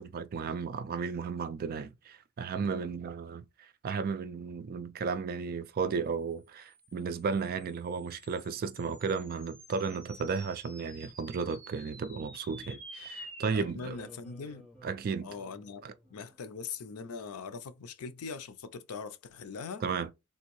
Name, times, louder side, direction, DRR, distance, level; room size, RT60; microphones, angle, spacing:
voice 1, 0.0-14.0 14.8-15.3 15.8-15.9 19.8-20.1, right 5 dB, 45° right, 0.3 m, -34 dB
sound 1, 6.5-17.1, equal, 5° left, 0.7 m, -52 dB
voice 2, 13.5-14.7 15.2-15.8 16.1-19.8, left 5 dB, 85° left, 0.5 m, -41 dB
3.5 x 2.6 x 3.0 m
head